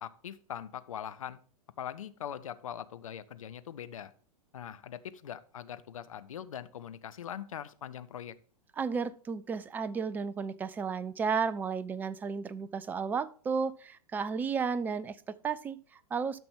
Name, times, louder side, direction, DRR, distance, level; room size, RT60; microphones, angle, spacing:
voice 1, 0.0-1.4 1.8-4.1 4.5-8.3, left 9 dB, 60° left, 12 dB, 0.7 m, -42 dB
voice 2, 8.8-16.4, right 5 dB, 10° right, 16 dB, 0.4 m, -33 dB
12.5 x 6.0 x 3.5 m, 0.43 s
figure-of-eight pair, 100°, 19 cm